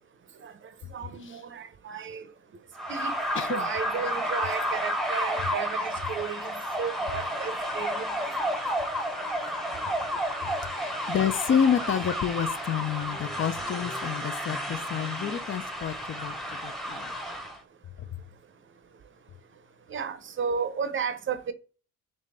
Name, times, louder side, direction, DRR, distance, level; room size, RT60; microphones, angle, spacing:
voice 1, 0.9-2.2 2.9-3.1 3.5-6.5 6.8-8.3 19.9-21.5, right 6 dB, 40° right, 0.6 m, -33 dB
sound 1, 2.7-17.6, equal, ahead, 0.8 m, -31 dB
voice 2, 3.3-3.7 11.1-16.3 16.6-17.1, left 8 dB, 40° left, 0.4 m, -28 dB
4.1 x 3.1 x 3.4 m
cardioid pair, 90°, 30 cm